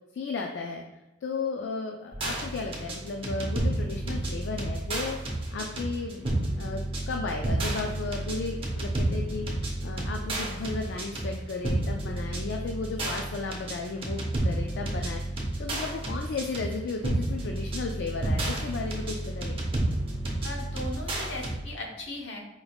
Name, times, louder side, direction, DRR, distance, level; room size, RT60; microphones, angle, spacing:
voice 1, 0.1-0.8 1.2-5.2 5.5-6.3 6.6-19.6, left 4 dB, 65° left, 3 dB, 0.3 m, -34 dB
sound 1, 2.1-21.6, right 1 dB, 30° right, 0.8 m, -31 dB
voice 2, 20.4-22.4, left 2 dB, 80° left, 0 dB, 0.9 m, -38 dB
4.8 x 3.4 x 2.3 m, 1.0 s
head